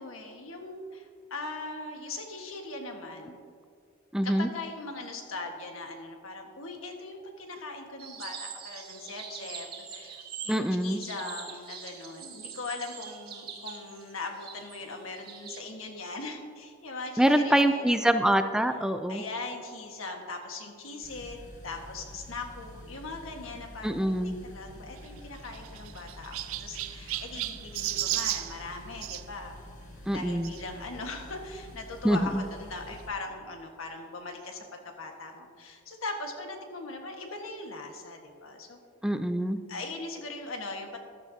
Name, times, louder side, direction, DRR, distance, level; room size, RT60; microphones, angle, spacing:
voice 1, 0.0-3.4 4.2-18.2 19.1-21.4 21.6-24.1 24.4-29.6 30.1-38.8 39.7-41.0, left 3 dB, 80° left, 3 dB, 1.5 m, -40 dB
voice 2, 4.1-4.5 10.5-11.0 17.2-19.2 23.8-24.4 30.1-30.5 32.0-32.4 39.0-39.6, right 1 dB, 5° right, 8 dB, 0.3 m, -25 dB
sound 1, 8.0-15.6, right 7 dB, 50° right, 1.6 m, -43 dB
sound 2, 21.0-33.1, left 1 dB, 40° left, 1.7 m, -48 dB
Chirp tweet, 24.9-29.2 30.4-30.6 31.3-31.4 31.6-31.7 33.0-33.1, right 14 dB, 75° right, 0.4 m, -34 dB
14.0 x 11.5 x 2.7 m, 2.2 s
head